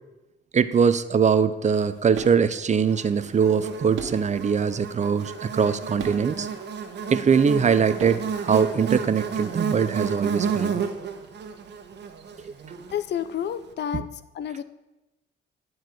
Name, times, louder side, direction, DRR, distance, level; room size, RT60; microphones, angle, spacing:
voice 1, 0.5-6.5 7.1-10.8 12.4-12.5, right 6 dB, 35° right, 13 dB, 0.6 m, -22 dB
sound 1, 1.4-2.6 3.2-4.4 4.8-4.9 5.4-6.4 7.2-7.3 7.5-9.2, right 5 dB, 80° right, 1.5 m, -39 dB
Buzz, 2.9-13.3, right 6 dB, 60° right, 1.3 m, -31 dB
voice 2, 12.9-14.6, left 9 dB, 60° left, 13 dB, 0.6 m, -30 dB
11.5 x 4.7 x 7.8 m, 1.0 s
cardioid pair, 90°, 20 cm